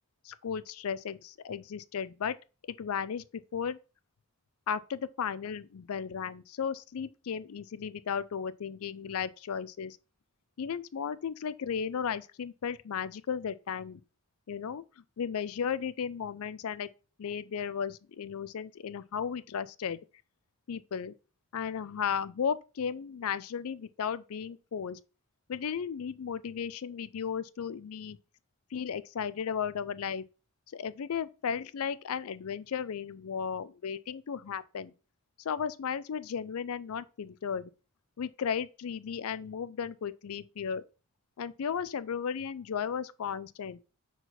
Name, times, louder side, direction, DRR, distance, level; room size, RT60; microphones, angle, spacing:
voice 1, 0.2-2.3 2.8-3.8 4.7-10.0 10.6-14.0 14.5-14.8 15.2-16.9 17.2-20.0 20.7-21.1 21.5-25.0 25.5-28.2 28.7-30.2 30.7-34.9 35.4-37.7 38.2-40.8 41.4-43.8, left 7 dB, 75° left, 0.4 m, -35 dB
4.6 x 4.0 x 5.7 m
head